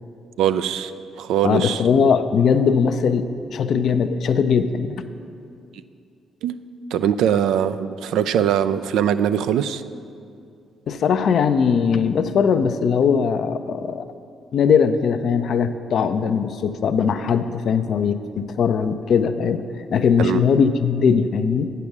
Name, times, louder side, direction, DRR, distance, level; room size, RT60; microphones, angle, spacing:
voice 1, 0.4-0.9 1.2-1.8 6.4-9.8 20.2-20.4, right 9 dB, 75° right, 12 dB, 0.3 m, -21 dB
voice 2, 1.4-5.0 10.9-14.0 14.5-19.6 19.9-21.7, left 6 dB, 60° left, 10 dB, 0.5 m, -20 dB
8.4 x 6.8 x 6.0 m, 2.4 s
hypercardioid pair, 50°, 0 cm